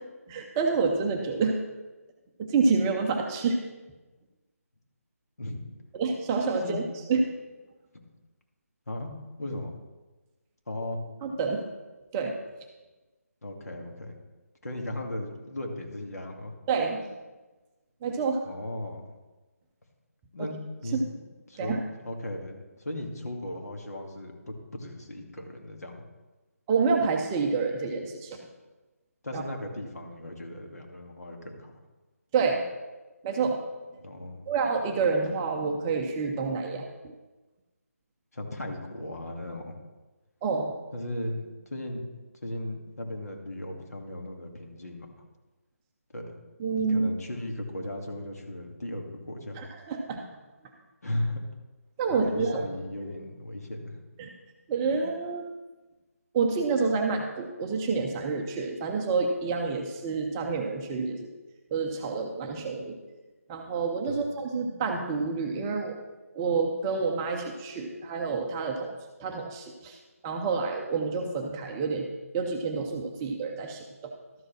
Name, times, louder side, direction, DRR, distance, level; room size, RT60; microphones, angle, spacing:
voice 1, 0.3-1.6 2.4-3.6 5.9-6.8 7.1-7.3 11.2-11.7 12.1-12.4 16.7-17.1 18.0-18.4 20.4-20.5 20.9-21.0 21.6-21.8 26.7-28.4 29.3-29.4 32.3-32.6 33.2-33.6 34.5-37.1 40.4-40.8 46.6-47.1 49.6-50.2 52.0-52.6 54.2-54.3 54.7-55.5 56.3-61.2 61.7-63.0 63.5-66.0 66.3-72.1 72.3-74.1, right 4 dB, 10° right, 2 dB, 0.5 m, -28 dB
voice 2, 9.4-9.7 10.7-11.0 13.4-14.2 14.6-16.5 18.5-19.0 20.3-20.6 20.8-21.2 21.5-21.8 22.0-26.0 29.2-31.7 34.0-34.4 38.3-39.8 40.9-42.1 42.4-45.1 46.1-46.3 46.7-49.6 51.0-51.4 52.1-54.0 64.1-64.2, left 1 dB, 75° left, 2 dB, 2.3 m, -36 dB
12.5 x 5.0 x 6.2 m, 1.2 s
figure-of-eight pair, 165°, 8 cm